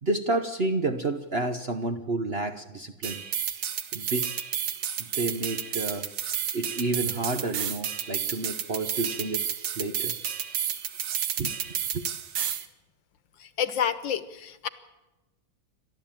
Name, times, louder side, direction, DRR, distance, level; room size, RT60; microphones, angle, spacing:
voice 1, 0.0-3.2 3.9-4.3 5.0-6.1 6.5-10.2 11.4-12.0, right 2 dB, 40° right, 1.0 m, -30 dB
sound 1, 3.0-12.7, right 9 dB, 85° right, 2.0 m, -31 dB
voice 2, 13.4-14.7, left 8 dB, 75° left, 1.9 m, -29 dB
29.0 x 13.0 x 9.0 m
omnidirectional pair, 2.1 m